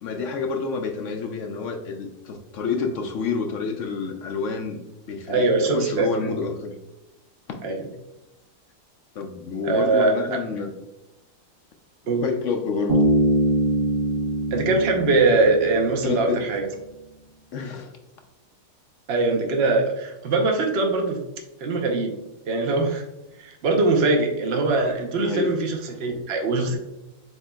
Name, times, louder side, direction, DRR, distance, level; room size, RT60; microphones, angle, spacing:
voice 1, 0.0-4.8 5.1-5.5 5.7-6.7 9.2-10.7 12.2-13.1 16.0-16.4 17.5-17.9 25.2-25.5, left 5 dB, 65° left, 4 dB, 0.8 m, -28 dB
voice 2, 5.3-6.3 7.6-7.8 9.6-10.4 12.1-12.3 14.5-16.7 19.1-21.2 21.6-22.1 22.4-23.0 23.4-26.7, right 3 dB, 50° right, 2 dB, 0.9 m, -22 dB
Bass guitar, 12.9-16.3, right 1 dB, 20° right, 0.6 m, -23 dB
7.9 x 2.8 x 2.2 m, 0.94 s
omnidirectional pair, 1.7 m